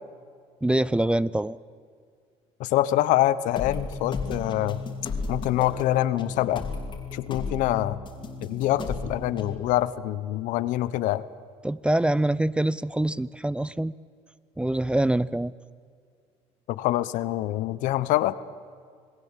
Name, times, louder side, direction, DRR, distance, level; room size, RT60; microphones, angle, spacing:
voice 1, 0.6-1.6 11.6-13.9 14.6-15.5, right 1 dB, 10° right, 18 dB, 0.5 m, -24 dB
voice 2, 2.6-4.8 5.3-6.6 7.1-8.0 8.4-11.2 16.7-18.4, left 14 dB, 75° left, 15 dB, 0.9 m, -25 dB
sound 1, 3.6-9.5, left 4 dB, 40° left, 2.8 m, -34 dB
27.5 x 18.0 x 7.5 m, 2.1 s
supercardioid pair, 90°, 13 cm